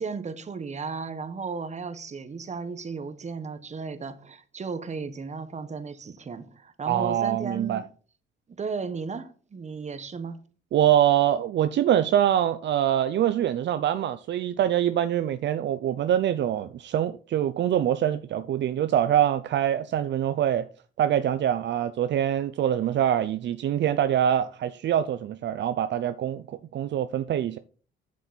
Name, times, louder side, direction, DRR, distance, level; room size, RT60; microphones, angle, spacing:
voice 1, 0.0-7.9 8.6-10.4, right 5 dB, 35° right, 1.2 m, -35 dB
voice 2, 6.9-7.8 10.7-20.7 21.0-27.6, right 10 dB, 65° right, 0.6 m, -24 dB
8.3 x 7.3 x 4.1 m
cardioid pair, 90°, 20 cm